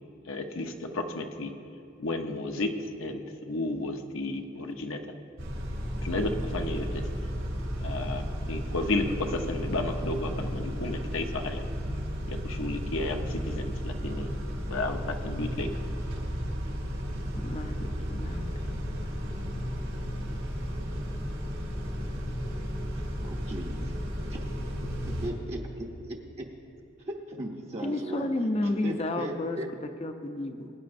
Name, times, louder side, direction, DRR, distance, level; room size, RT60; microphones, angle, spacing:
voice 1, 0.2-1.5 2.0-5.0 6.0-7.3 7.8-11.6 12.3-14.3 14.7-15.7, left 2 dB, 85° left, 4 dB, 0.9 m, -32 dB
Car / Idling / Accelerating revving vroom, 5.4-25.3, equal, 85° right, 2.9 m, -33 dB
voice 2, 17.3-19.1 27.8-30.7, left 2 dB, 30° left, 7 dB, 0.6 m, -32 dB
voice 3, 23.2-23.9 24.3-24.4 25.2-26.5 27.1-28.3 28.6-29.7, right 1 dB, 30° right, -2 dB, 0.7 m, -37 dB
21.0 x 9.5 x 2.6 m, 2.8 s
head